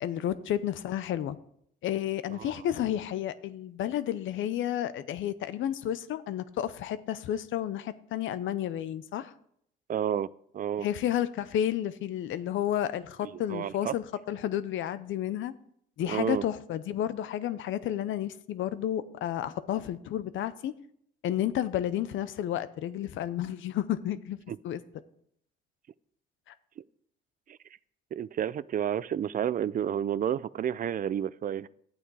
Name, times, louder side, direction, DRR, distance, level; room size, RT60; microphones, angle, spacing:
voice 1, 0.0-1.4 1.8-9.3 10.8-15.5 16.0-20.7 21.2-24.4 24.6-24.8, left 11 dB, 80° left, 0.7 m, -31 dB
voice 2, 9.9-10.3 10.5-10.9 13.5-13.9 16.0-16.4 27.5-27.6 28.1-31.7, right 9 dB, 45° right, 0.4 m, -30 dB
11.5 x 8.9 x 4.7 m
cardioid pair, 90°, 20 cm